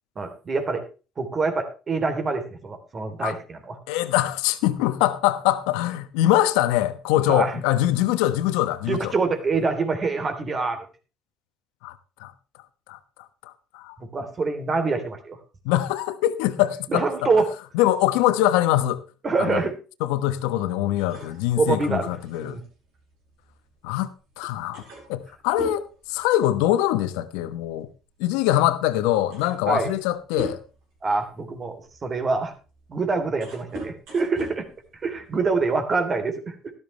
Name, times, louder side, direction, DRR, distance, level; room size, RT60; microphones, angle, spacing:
voice 1, 0.1-0.8 1.2-3.8 7.3-7.5 8.9-10.8 14.0-15.4 16.9-17.5 19.2-19.7 21.6-22.6 29.7-29.9 31.0-31.8 32.0-32.5 32.9-34.7 35.0-36.7, right 3 dB, 35° right, 3.3 m, -25 dB
voice 2, 3.9-9.1 11.8-11.9 12.2-12.3 12.9-13.0 13.4-14.0 15.6-17.3 17.7-19.0 19.4-19.6 20.0-22.6 23.8-24.1 24.4-24.8 25.1-27.9 28.2-30.6, left 14 dB, 85° left, 1.1 m, -23 dB
sound 1, 21.0-24.0 24.3-24.4 24.7-26.9 27.2-27.4 28.4-28.5 29.0-30.9 31.5-35.6, right 1 dB, 75° right, 6.7 m, -40 dB
13.0 x 12.5 x 3.3 m
supercardioid pair, 75°, 0 cm